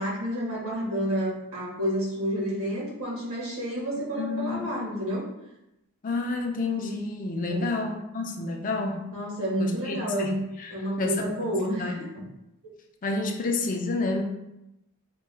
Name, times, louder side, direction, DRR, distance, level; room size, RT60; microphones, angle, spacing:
voice 1, 0.0-5.3 7.5-7.8 9.1-10.4 10.7-12.2, equal, 65° right, -5 dB, 1.4 m, -30 dB
voice 2, 4.0-4.7 6.0-9.2 9.6-11.5 11.8-12.0 13.0-14.2, left 3 dB, 35° left, 3 dB, 0.4 m, -30 dB
4.4 x 2.2 x 3.3 m, 0.88 s
head